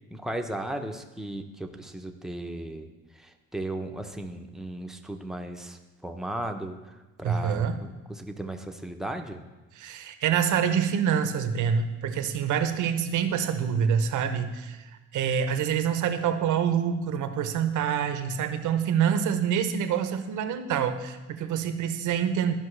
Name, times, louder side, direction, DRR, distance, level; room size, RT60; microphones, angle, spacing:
voice 1, 0.1-2.9 3.1-9.4, right 1 dB, ahead, 4 dB, 0.7 m, -36 dB
voice 2, 7.2-7.8 9.8-14.8 15.1-22.6, right 8 dB, 75° right, 9 dB, 0.8 m, -26 dB
13.0 x 5.4 x 3.2 m, 1.2 s
cardioid pair, 90°, 30 cm